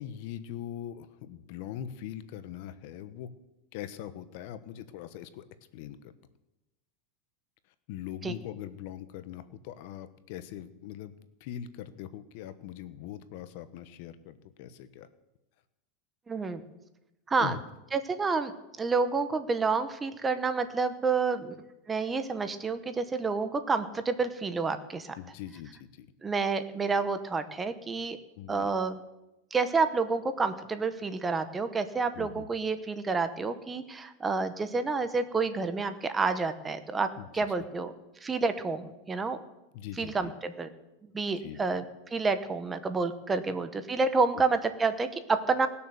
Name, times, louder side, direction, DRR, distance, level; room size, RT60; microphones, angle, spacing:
voice 1, 0.0-3.3 3.7-5.4 5.7-6.1 7.9-11.1 11.4-15.1 17.4-17.6 25.2-26.1 28.4-28.7 32.1-32.4 37.2-37.3 39.7-40.3 41.4-41.6 43.5-43.6, left 10 dB, 60° left, 12 dB, 1.0 m, -41 dB
voice 2, 16.3-16.6 17.3-17.6 17.9-18.5 18.8-21.5 21.9-25.1 26.2-28.2 28.5-29.0 29.5-37.1 37.3-37.9 38.2-39.4 40.0-40.7 41.1-41.8 42.1-45.7, right 4 dB, 15° right, 10 dB, 0.9 m, -29 dB
19.0 x 6.9 x 6.9 m, 0.96 s
supercardioid pair, 140°, 0 cm